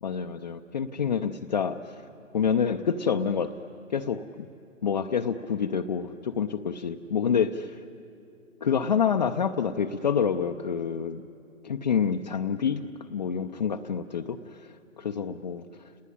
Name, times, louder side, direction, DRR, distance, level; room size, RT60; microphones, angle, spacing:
voice 1, 0.0-2.0 2.3-4.5 4.8-7.8 8.6-11.2 11.6-15.9, left 7 dB, 35° left, 4 dB, 0.5 m, -28 dB
30.0 x 20.0 x 9.9 m, 2.6 s
hypercardioid pair, 155°, 40 cm